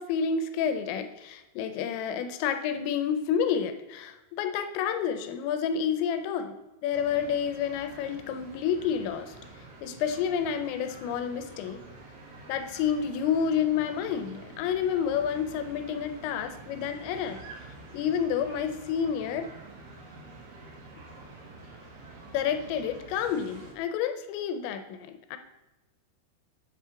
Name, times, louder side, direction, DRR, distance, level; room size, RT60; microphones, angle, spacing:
voice 1, 0.0-6.6 6.8-9.3 9.8-11.8 12.5-17.4 17.9-19.5 22.3-25.4, left 7 dB, 85° left, 8 dB, 2.8 m, -29 dB
sound 1, 6.9-23.7, right 2 dB, 60° right, 2.0 m, -48 dB
8.4 x 3.7 x 5.6 m, 1.0 s
omnidirectional pair, 5.2 m